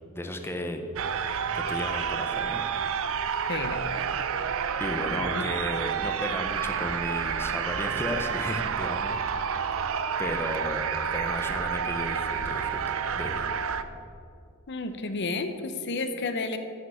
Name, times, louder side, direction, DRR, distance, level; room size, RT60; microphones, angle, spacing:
voice 1, 0.1-0.8 1.5-2.6 4.8-9.7 10.2-12.8 13.1-13.5, left 1 dB, 10° left, 5 dB, 0.7 m, -34 dB
sound 1, 1.0-13.8, right 7 dB, 65° right, 0.6 m, -29 dB
voice 2, 3.5-4.0 5.2-5.5 14.7-16.6, left 3 dB, 55° left, 8 dB, 0.7 m, -32 dB
9.6 x 6.6 x 8.3 m, 2.4 s
head